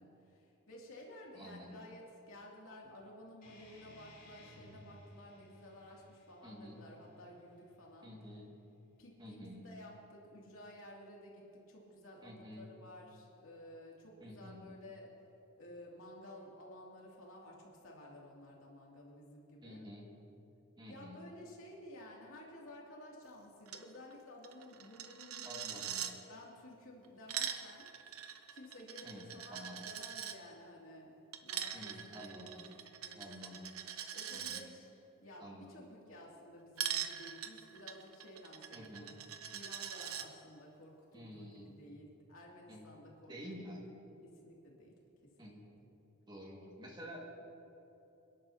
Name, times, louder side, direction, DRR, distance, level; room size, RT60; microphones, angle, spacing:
voice 1, 0.0-8.4 9.0-15.1 15.6-19.9 20.9-27.9 28.5-31.1 31.4-33.6 34.1-34.9 35.2-39.2 39.5-43.8 44.2-44.9 45.4-45.5, left 1 dB, 70° left, -3 dB, 2.7 m, -54 dB
voice 2, 1.3-1.8 6.4-6.8 8.0-8.5 9.2-9.7 12.2-12.7 14.2-14.7 19.6-20.1 20.8-21.2 25.4-26.0 29.0-29.3 29.5-29.8 31.7-32.6 33.1-33.6 34.3-34.6 35.4-35.7 38.7-39.1 41.1-41.7 42.7-42.9 43.3-43.8 45.4-45.6 46.3-47.2, equal, 20° right, -2 dB, 2.0 m, -50 dB
sound 1, 3.4-8.5, left 1 dB, 40° left, 2.8 m, -60 dB
Coin (dropping), 23.7-23.8 24.1-24.2 24.4-26.1 27.0-30.4 31.3-34.6 36.8-40.3, right 9 dB, 80° right, 0.8 m, -42 dB
28.5 x 11.0 x 2.9 m, 3.0 s
head